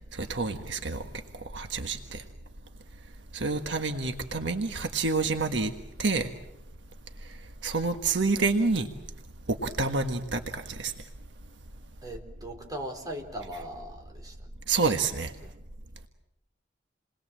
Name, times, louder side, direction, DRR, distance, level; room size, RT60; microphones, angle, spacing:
voice 1, 0.1-1.0 1.4-2.2 3.3-5.7 6.0-6.3 7.6-8.9 9.5-10.9 14.7-15.3, right 3 dB, 70° right, 6 dB, 1.5 m, -28 dB
voice 2, 12.0-14.5 15.4-15.5, right 1 dB, 20° right, 2 dB, 4.1 m, -39 dB
28.5 x 20.5 x 7.6 m, 0.89 s
head